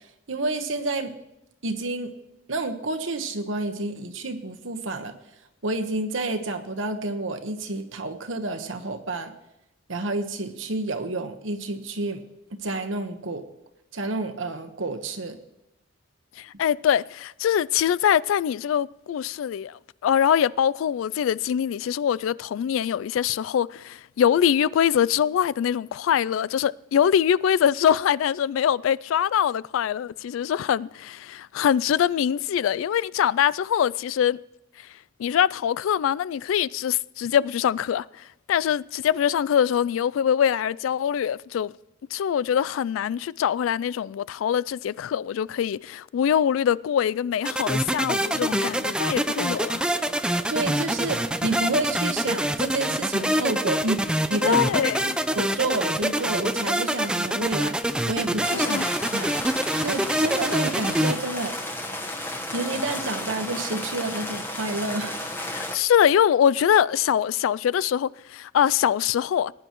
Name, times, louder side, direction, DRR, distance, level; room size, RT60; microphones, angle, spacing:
voice 1, 0.3-1.1 1.6-2.1 2.5-5.1 5.6-9.3 9.9-12.2 12.5-13.4 13.9-15.4 50.5-54.0 54.3-59.3 59.8-61.5 62.5-65.3, right 2 dB, 70° right, 1.2 m, -29 dB
voice 2, 16.4-34.4 35.2-41.7 42.1-49.9 54.4-55.1 58.5-58.9 65.5-69.5, left 9 dB, 90° left, 0.3 m, -23 dB
sound 1, 47.4-61.1, right 1 dB, 5° right, 0.4 m, -25 dB
sound 2, 58.4-65.8, left 1 dB, 10° left, 1.2 m, -33 dB
20.5 x 9.9 x 3.0 m
head